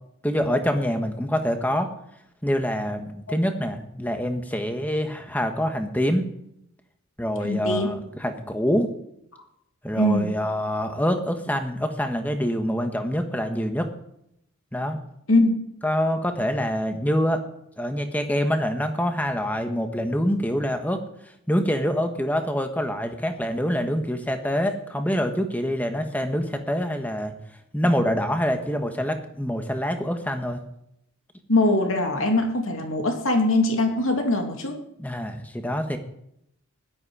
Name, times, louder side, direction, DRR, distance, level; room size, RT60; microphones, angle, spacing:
voice 1, 0.2-1.9 2.4-6.2 7.2-8.9 9.8-13.9 14.7-15.0 15.8-17.4 17.8-21.0 21.5-27.3 27.7-30.6 35.0-36.0, equal, 10° left, 6 dB, 1.3 m, -25 dB
voice 2, 7.4-7.9 9.9-10.3 15.3-15.5 31.5-34.8, left 2 dB, 70° left, 3 dB, 2.8 m, -22 dB
16.5 x 12.0 x 4.9 m, 0.76 s
head